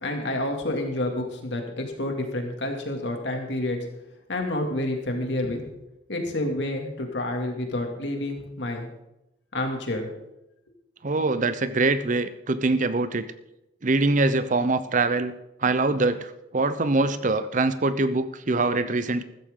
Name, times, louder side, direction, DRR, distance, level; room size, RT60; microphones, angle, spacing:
voice 1, 0.0-3.8 4.3-5.6 6.1-8.9 9.5-10.1, left 1 dB, 75° left, 3 dB, 2.5 m, -29 dB
voice 2, 11.0-13.3 13.8-15.3 15.6-19.2, right 3 dB, 45° right, 13 dB, 0.7 m, -23 dB
15.0 x 13.5 x 3.8 m, 0.90 s
head